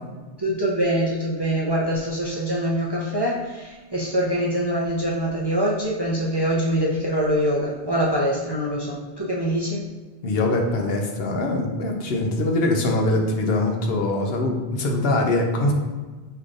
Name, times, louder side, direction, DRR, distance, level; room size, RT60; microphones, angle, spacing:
voice 1, 0.4-9.8, equal, 35° right, -5 dB, 0.4 m, -24 dB
voice 2, 10.2-15.7, left 2 dB, 70° left, 2 dB, 0.9 m, -23 dB
5.5 x 3.3 x 2.5 m, 1.3 s
omnidirectional pair, 1.0 m